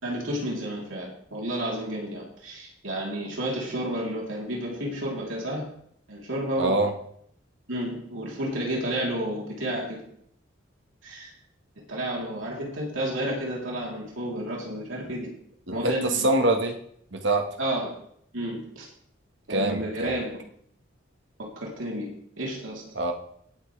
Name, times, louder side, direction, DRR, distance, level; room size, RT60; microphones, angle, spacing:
voice 1, 0.0-5.7 6.1-6.8 7.7-10.0 11.0-11.3 11.9-15.3 15.7-16.3 17.6-17.9 18.3-18.9 19.5-20.4 21.4-22.1 22.4-22.8, right 1 dB, 80° right, -3 dB, 3.5 m, -31 dB
voice 2, 6.6-6.9 15.7-16.8 17.1-17.5 19.5-20.2 22.9-23.1, right 2 dB, 65° right, 4 dB, 1.6 m, -24 dB
18.5 x 8.4 x 3.4 m, 0.67 s
head